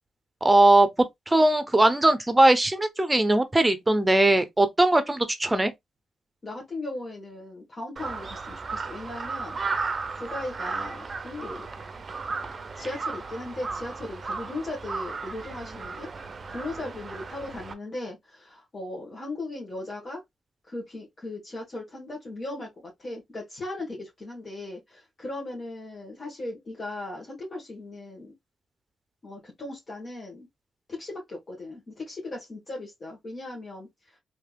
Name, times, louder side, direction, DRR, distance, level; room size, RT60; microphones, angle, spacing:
voice 1, 0.4-5.7, right 2 dB, 20° right, 0.8 m, -20 dB
voice 2, 6.4-9.6 10.1-11.7 12.8-16.1 16.5-20.2 20.7-28.3 29.2-30.5 30.9-33.9, left 2 dB, 45° left, 1.4 m, -37 dB
Crow, 8.0-17.7, right 4 dB, 45° right, 0.6 m, -35 dB
3.3 x 2.8 x 2.3 m
supercardioid pair, 55°, 0 cm